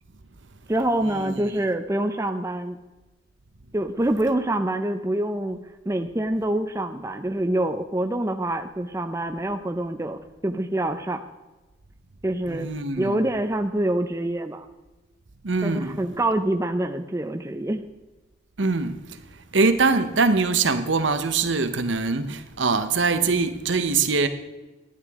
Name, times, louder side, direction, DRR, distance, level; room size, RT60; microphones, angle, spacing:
voice 1, 0.7-2.8 3.7-11.2 12.2-12.7 13.0-14.7 15.6-17.9, right 1 dB, 15° right, 0.5 m, -26 dB
voice 2, 12.5-13.2 15.4-16.0 18.6-19.0 19.5-24.3, right 4 dB, 80° right, 0.9 m, -23 dB
11.5 x 11.0 x 3.6 m
head